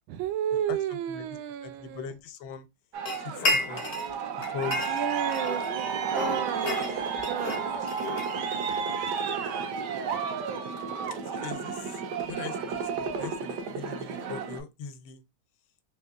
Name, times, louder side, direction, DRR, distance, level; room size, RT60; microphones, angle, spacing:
voice 1, 0.1-2.1 4.9-5.9 6.1-7.7 8.9-9.8, right 10 dB, 90° right, 1.4 m, -33 dB
voice 2, 1.6-2.6 3.2-3.8 4.5-4.9 11.3-11.8 12.3-15.2, left 6 dB, 85° left, 1.5 m, -40 dB
Aircraft, 2.9-14.6, right 6 dB, 65° right, 1.2 m, -32 dB
sound 1, 3.1-4.1 4.4-5.7 6.1-8.8, left 2 dB, 60° left, 0.6 m, -32 dB
4.0 x 3.4 x 2.3 m
omnidirectional pair, 2.1 m